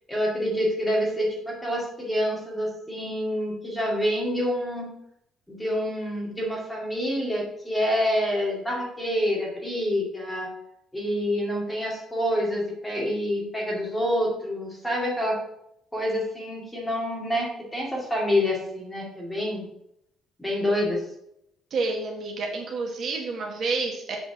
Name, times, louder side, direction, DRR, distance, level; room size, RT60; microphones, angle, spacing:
voice 1, 0.1-4.9 5.5-10.5 10.9-15.4 15.9-19.7 20.4-21.0, equal, 5° left, -3 dB, 2.1 m, -27 dB
voice 2, 21.7-24.2, right 3 dB, 40° right, 1 dB, 1.1 m, -29 dB
7.4 x 4.0 x 6.3 m, 0.75 s
cardioid pair, 175°, 0 cm